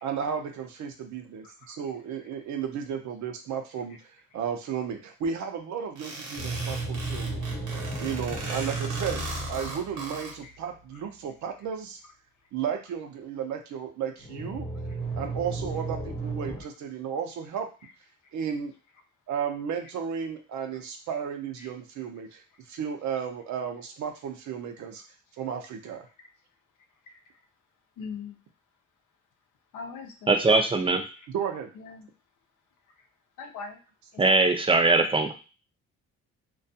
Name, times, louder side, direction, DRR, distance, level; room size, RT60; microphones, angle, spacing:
voice 1, 0.0-7.5 8.0-12.0 12.5-14.7 15.2-17.7 18.3-18.7 19.3-22.4 22.7-25.0 25.4-26.1 31.3-31.7, right 7 dB, 70° right, 5 dB, 0.6 m, -34 dB
sound 1, 6.0-10.3, right 3 dB, 85° right, 0.9 m, -38 dB
sound 2, 6.4-10.5 14.2-16.6, right 3 dB, 35° left, 0.9 m, -34 dB
voice 2, 28.0-28.3 29.7-30.9 31.2-31.3 31.7-32.1 33.4-33.8 34.1-34.4, left 5 dB, 80° left, 4 dB, 0.7 m, -41 dB
voice 3, 30.3-31.0 34.2-35.3, right 3 dB, 20° right, 5 dB, 0.3 m, -21 dB
2.3 x 2.2 x 2.7 m, 0.34 s
cardioid pair, 90°, 30 cm